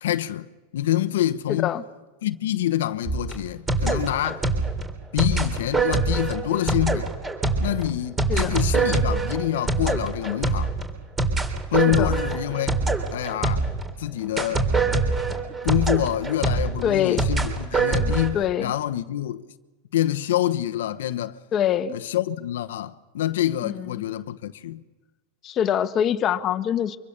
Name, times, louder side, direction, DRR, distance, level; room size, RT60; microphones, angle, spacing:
voice 1, 0.0-0.5 0.7-1.8 2.2-4.5 5.1-7.1 7.6-10.7 11.7-12.7 13.1-14.7 15.3-15.4 15.6-19.4 19.9-21.4 21.9-24.8, left 13 dB, 85° left, 1.1 m, -26 dB
voice 2, 1.5-1.8 8.3-8.6 11.9-12.1 16.8-17.2 18.3-18.7 21.5-22.0 23.6-24.0 25.4-27.0, left 10 dB, 35° left, 1.3 m, -24 dB
sound 1, 3.1-13.9 14.4-18.3, right 3 dB, 15° right, 3.4 m, -24 dB
25.0 x 24.0 x 6.8 m
supercardioid pair, 135°, 0 cm